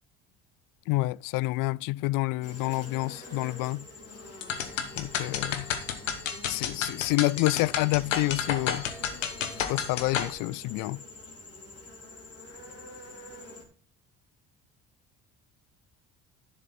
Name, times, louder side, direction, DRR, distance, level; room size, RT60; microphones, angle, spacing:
voice 1, 0.9-3.9 5.0-5.7 6.5-8.9 9.7-11.0, left 20 dB, 60° left, 0.5 m, -28 dB
sound 1, 2.4-13.7, left 2 dB, 40° left, 3.4 m, -46 dB
sound 2, 4.4-10.3, left 8 dB, 90° left, 1.1 m, -31 dB
11.5 x 6.7 x 4.3 m
hypercardioid pair, 60°, 37 cm